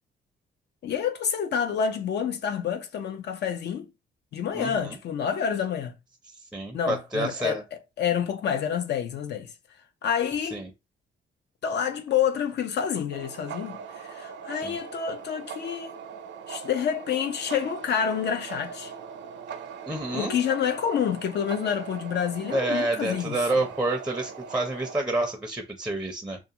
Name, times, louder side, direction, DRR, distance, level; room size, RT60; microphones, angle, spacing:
voice 1, 0.8-3.9 4.3-5.9 6.7-9.5 10.0-10.6 11.6-16.0 16.5-18.9 20.1-23.4, left 8 dB, 60° left, 0.5 m, -28 dB
voice 2, 4.5-5.0 6.5-7.6 10.5-10.7 14.6-14.8 19.9-20.3 22.4-26.4, right 2 dB, 5° right, 0.5 m, -28 dB
sound 1, 13.1-25.0, right 6 dB, 65° right, 0.5 m, -40 dB
2.4 x 2.4 x 2.8 m
cardioid pair, 90°, 20 cm